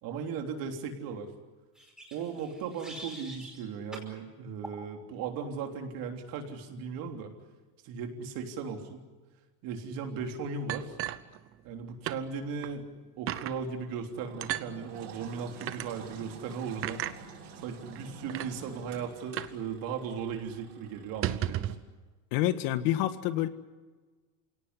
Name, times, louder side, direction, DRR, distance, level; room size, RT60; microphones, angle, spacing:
voice 1, 0.0-1.3 2.1-7.3 7.8-9.0 9.6-11.0 11.6-12.9 13.2-17.0 17.6-21.8, right 6 dB, 50° right, 4 dB, 3.5 m, -37 dB
sound 1, 1.7-3.6 3.9-4.1 4.6-4.8, equal, ahead, 5.3 m, -46 dB
sound 2, 10.7-11.8 12.1-12.2 12.6-12.7 13.3-13.6 14.4-14.7 15.6-15.9 16.8-17.2 17.9-18.0 18.3-18.5 19.4-19.6 19.9-20.0 20.3-20.5 21.1-21.8, right 12 dB, 30° right, 0.9 m, -34 dB
Engine, 14.2-21.7, right 5 dB, 85° right, 6.7 m, -49 dB
voice 2, 22.3-23.5, left 13 dB, 65° left, 11 dB, 1.6 m, -27 dB
28.5 x 18.0 x 9.7 m, 1.3 s
cardioid pair, 170°, 43 cm